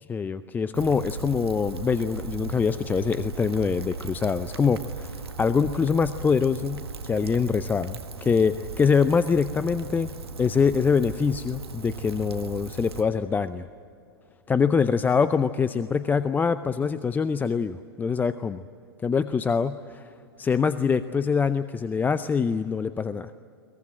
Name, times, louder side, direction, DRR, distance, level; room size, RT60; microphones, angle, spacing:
voice 1, 0.1-10.1 10.4-13.7 14.5-18.6 19.0-20.1 20.4-23.3, left 5 dB, 15° left, 13 dB, 0.6 m, -24 dB
Rain, 0.7-13.0, right 4 dB, 75° right, 1.8 m, -37 dB
22.5 x 21.0 x 9.0 m, 2.5 s
figure-of-eight pair, 105°, 13 cm